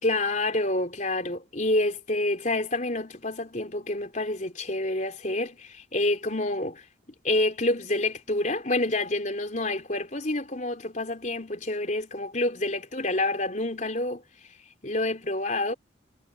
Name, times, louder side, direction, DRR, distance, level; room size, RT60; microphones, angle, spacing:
voice 1, 0.0-6.8 7.2-14.2 14.8-15.7, left 2 dB, 40° left, 4.2 m, -28 dB
head